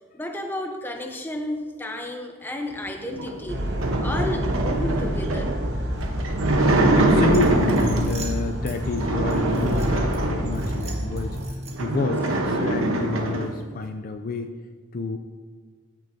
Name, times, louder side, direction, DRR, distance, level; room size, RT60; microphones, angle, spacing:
voice 1, 0.1-3.6 4.0-5.5, left 1 dB, 10° left, 4 dB, 0.7 m, -32 dB
sound 1, 3.1-8.3 8.8-10.9 11.4-11.5 11.7-13.5, right 2 dB, 90° right, 1.0 m, -24 dB
sound 2, 3.5-11.5, equal, 55° right, 1.0 m, -29 dB
voice 2, 6.9-14.5 14.9-15.2, left 3 dB, 45° left, 7 dB, 0.4 m, -28 dB
sound 3, 7.3-8.8 9.3-10.2 10.5-12.0, right 4 dB, 30° right, 1.4 m, -43 dB
15.0 x 6.3 x 2.7 m, 1.5 s
head